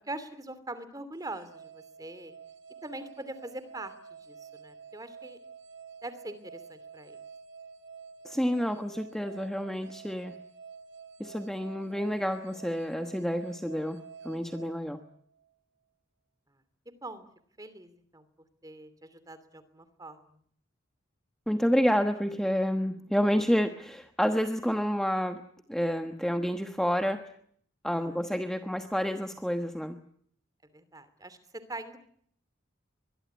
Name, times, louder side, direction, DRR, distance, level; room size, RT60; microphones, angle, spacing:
voice 1, 0.1-2.3 2.8-5.4 6.0-7.2 15.0-15.1 16.9-17.3 17.6-18.3 18.6-20.4 27.9-28.1 30.7-32.0, right 2 dB, 20° right, 13 dB, 2.8 m, -43 dB
sound 1, 1.1-15.5, right 5 dB, 70° right, 2.4 m, -49 dB
voice 2, 8.2-10.4 11.2-15.0 21.5-25.4 25.7-27.2 27.8-30.0, equal, ahead, 6 dB, 1.2 m, -29 dB
24.0 x 22.0 x 9.6 m, 0.64 s
head